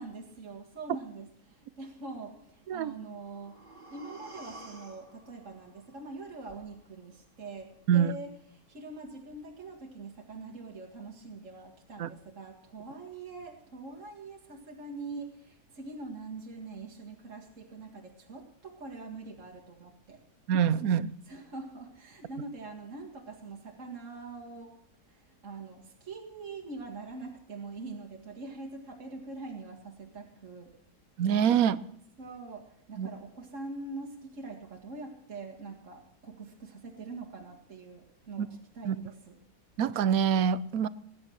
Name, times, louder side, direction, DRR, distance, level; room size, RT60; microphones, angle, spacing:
voice 1, 0.0-20.2 21.3-24.8 25.0-30.7 32.2-39.4, right 3 dB, 50° right, 2.2 m, -44 dB
sound 1, 2.9-6.9 7.3-7.4, right 2 dB, 30° right, 2.4 m, -51 dB
voice 2, 20.5-21.1 31.2-31.8 33.0-33.1 38.4-38.5 38.8-39.0 39.8-40.9, right 8 dB, 65° right, 1.1 m, -25 dB
20.0 x 10.5 x 6.4 m
omnidirectional pair, 1.8 m